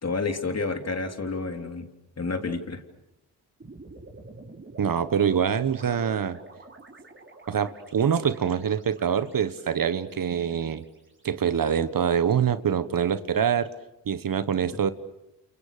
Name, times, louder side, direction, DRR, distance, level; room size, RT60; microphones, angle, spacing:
voice 1, 0.0-1.9 2.2-2.8, left 3 dB, 35° left, 6 dB, 3.5 m, -29 dB
sound 1, 3.6-11.9, right 2 dB, 30° right, 5.1 m, -49 dB
voice 2, 4.8-6.4 7.5-10.8 11.2-13.7 14.1-14.9, right 8 dB, 50° right, 13 dB, 1.4 m, -25 dB
29.5 x 28.0 x 6.8 m, 0.91 s
supercardioid pair, 60°, 41 cm